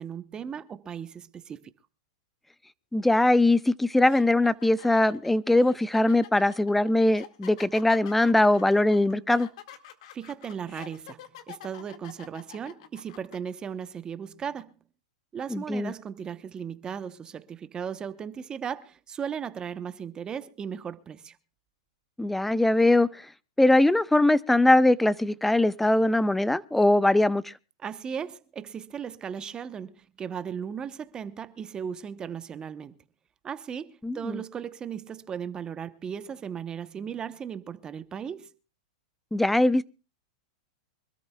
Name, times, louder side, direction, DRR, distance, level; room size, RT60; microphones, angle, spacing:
voice 1, 0.0-1.7 10.1-14.7 15.3-21.4 27.8-32.9 33.4-38.5, right 7 dB, 20° right, 0.9 m, -36 dB
voice 2, 2.9-9.5 15.5-15.9 22.2-23.1 23.6-27.5 34.0-34.4 39.3-39.8, left 2 dB, 5° left, 0.6 m, -21 dB
sound 1, 3.4-3.5 4.0-13.4, left 11 dB, 60° left, 2.0 m, -47 dB
25.5 x 13.5 x 2.3 m
hypercardioid pair, 125°, 4 cm